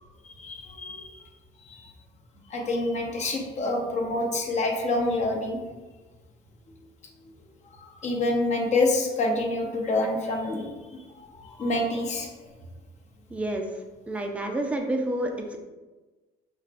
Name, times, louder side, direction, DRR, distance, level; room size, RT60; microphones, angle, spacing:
voice 1, 0.4-1.2 1.6-1.9 2.5-5.6 7.8-10.7 11.2-12.3, left 2 dB, 45° left, 2 dB, 0.7 m, -27 dB
voice 2, 13.3-13.6 14.1-15.6, right 1 dB, 5° right, 3 dB, 0.4 m, -29 dB
5.5 x 2.2 x 2.5 m, 1.2 s
cardioid pair, 110°, 17 cm